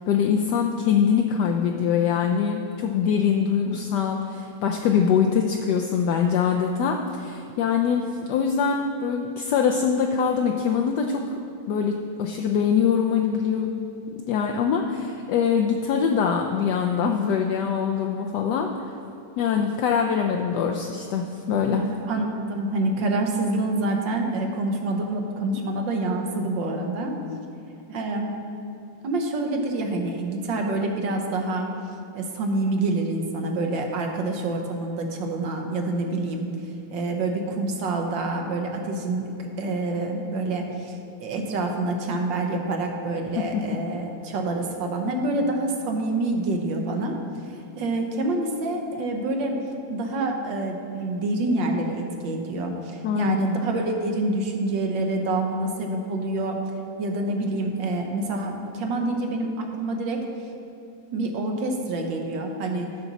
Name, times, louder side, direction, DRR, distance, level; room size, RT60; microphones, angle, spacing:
voice 1, 0.1-11.4 11.7-13.9 14.3-18.7 19.4-21.9 43.5-43.6 53.0-53.4, left 7 dB, 75° left, 2 dB, 1.1 m, -23 dB
voice 2, 21.7-27.2 27.9-28.3 29.0-31.7 32.1-36.5 36.9-39.3 39.6-47.2 47.4-49.6 49.9-56.6 57.0-60.2 61.1-62.9, right 2 dB, 80° right, 3 dB, 1.6 m, -27 dB
12.0 x 6.0 x 4.0 m, 2.7 s
omnidirectional pair, 2.0 m